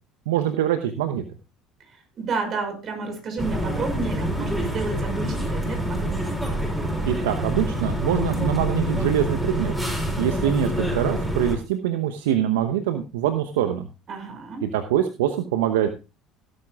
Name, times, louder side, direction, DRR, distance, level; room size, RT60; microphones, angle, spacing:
voice 1, 0.3-1.3 7.1-9.7 10.2-13.9 14.6-15.9, right 10 dB, 75° right, 8 dB, 0.9 m, -24 dB
voice 2, 1.9-6.4 14.1-14.7, right 4 dB, 45° right, 5 dB, 5.7 m, -31 dB
sound 1, 3.4-11.6, equal, 5° right, 6.3 m, -26 dB
16.0 x 12.0 x 2.4 m, 0.29 s
hypercardioid pair, 65°, 0 cm